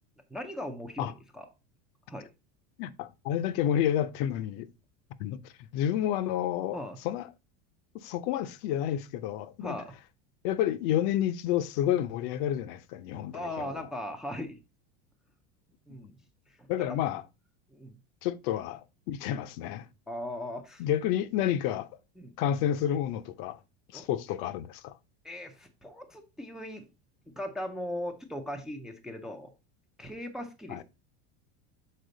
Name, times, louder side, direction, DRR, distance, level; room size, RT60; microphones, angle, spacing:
voice 1, 0.3-1.5 2.1-2.3 6.7-7.0 9.6-10.0 13.3-14.6 15.9-16.2 16.5-17.0 17.7-18.0 20.1-20.8 22.2-22.3 23.9-24.1 25.2-26.8 27.4-29.5 30.0-30.8, left 1 dB, ahead, 0.4 m, -38 dB
voice 2, 2.8-4.7 5.2-6.8 7.0-7.3 8.0-9.8 10.4-13.8 16.7-17.2 18.2-19.9 20.8-21.9 22.4-23.6 23.9-24.9 30.7-30.8, left 10 dB, 50° left, 0.6 m, -30 dB
6.6 x 4.3 x 3.8 m
supercardioid pair, 160°, 34 cm